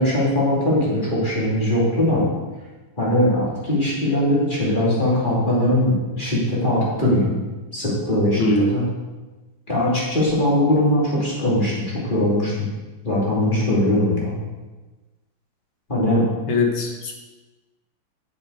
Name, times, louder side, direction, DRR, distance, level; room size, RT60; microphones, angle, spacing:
voice 1, 0.0-2.3 3.0-7.3 7.7-8.8 9.7-11.8 12.1-12.7 13.0-14.3 15.9-16.2, left 1 dB, 20° left, -6 dB, 2.9 m, -20 dB
voice 2, 8.4-8.7 16.5-17.1, left 2 dB, 75° left, 2 dB, 2.2 m, -21 dB
9.5 x 7.7 x 4.7 m, 1.2 s
omnidirectional pair, 2.3 m